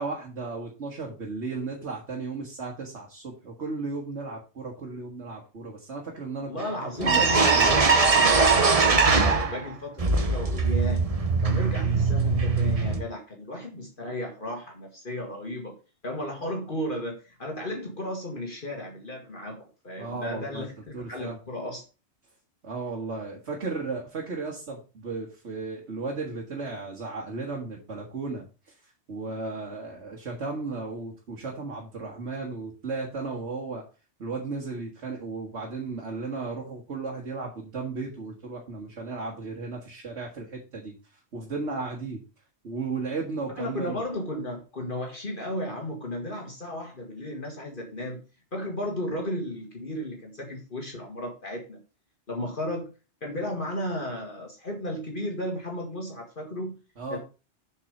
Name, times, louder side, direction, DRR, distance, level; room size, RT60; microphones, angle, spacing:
voice 1, 0.0-7.7 20.0-20.7 20.9-21.4 22.6-28.7 29.1-33.9 34.2-40.9 41.3-42.2 42.6-44.0 57.0-57.2, right 3 dB, 75° right, -1 dB, 1.9 m, -35 dB
voice 2, 6.5-11.0 11.4-15.8 16.0-21.8 43.6-48.2 48.5-51.8 52.3-52.9 53.2-56.8 57.1-57.2, left 1 dB, 50° left, 1 dB, 1.8 m, -34 dB
sound 1, 6.6-6.7 7.0-9.7 10.0-13.0, right 4 dB, 35° right, 1.0 m, -21 dB
7.2 x 4.7 x 6.3 m, 0.32 s
omnidirectional pair, 1.2 m